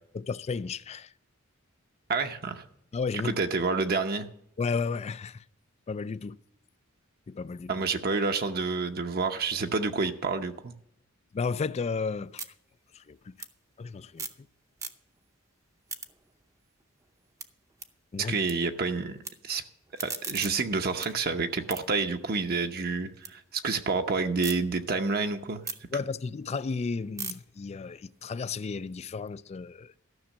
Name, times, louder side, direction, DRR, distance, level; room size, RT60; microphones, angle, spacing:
voice 1, 0.1-1.1 2.9-3.4 4.6-5.4 5.9-6.4 7.3-7.8 11.3-12.4 12.9-13.3 13.8-14.3 18.1-18.4 25.9-29.9, left 4 dB, 30° left, 0.3 m, -33 dB
voice 2, 2.1-2.6 3.2-4.3 7.7-10.7 18.2-19.2 19.4-19.6 20.0-25.6, right 4 dB, 50° right, 0.8 m, -29 dB
sound 1, 11.5-14.5 14.7-15.3 15.7-18.5 18.8-19.3 19.7-23.3 23.7-24.6 25.0-29.2, right 4 dB, 15° right, 0.7 m, -43 dB
13.0 x 6.2 x 7.3 m
head